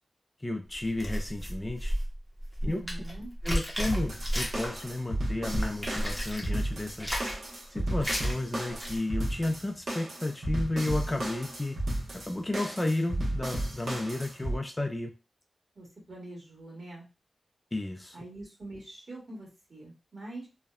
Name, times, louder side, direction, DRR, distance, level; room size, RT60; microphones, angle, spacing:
voice 1, 0.4-1.9 2.6-2.8 3.4-7.1 7.7-11.8 12.3-15.1 17.7-18.2, left 2 dB, 20° left, 3 dB, 0.3 m, -32 dB
sound 1, 0.7-4.9 5.2-6.5 6.9-7.5 8.0-8.3 8.7-9.0, equal, ahead, 0.7 m, -33 dB
voice 2, 2.6-3.3 15.7-17.0 18.1-20.5, right 2 dB, 50° right, -3 dB, 1.4 m, -44 dB
sound 2, 3.9-14.6, right 1 dB, 70° right, 0.9 m, -33 dB
2.6 x 2.1 x 2.3 m, 0.29 s
wide cardioid pair, 115°, 0 cm